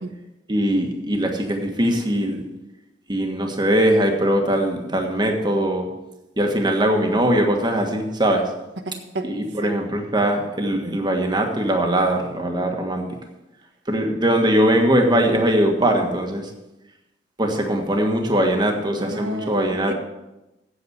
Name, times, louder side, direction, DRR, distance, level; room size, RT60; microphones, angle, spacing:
voice 1, 0.5-2.5 3.1-5.9 6.4-8.5 9.2-13.0 13.9-16.5 17.4-19.9, right 1 dB, 25° right, 3 dB, 1.5 m, -21 dB
voice 2, 8.9-9.3 9.6-9.7 19.0-19.9, right 1 dB, 80° right, 5 dB, 1.2 m, -31 dB
8.3 x 8.1 x 8.0 m, 0.97 s
head